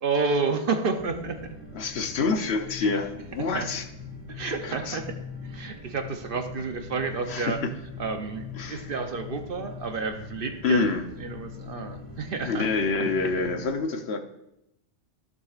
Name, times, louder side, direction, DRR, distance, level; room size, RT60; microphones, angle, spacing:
voice 1, 0.0-1.4 2.8-2.9 3.4-3.7 4.3-5.2 5.4-7.6 8.0-12.7, right 4 dB, 55° right, 6 dB, 0.8 m, -30 dB
sound 1, 1.0-13.7, left 4 dB, 20° right, 1.5 m, -42 dB
voice 2, 1.7-3.8 4.6-5.0 7.3-7.7 8.6-8.9 10.6-11.0 12.4-14.2, left 4 dB, 65° left, 6 dB, 1.0 m, -27 dB
14.5 x 6.7 x 2.4 m, 0.83 s
omnidirectional pair, 1.2 m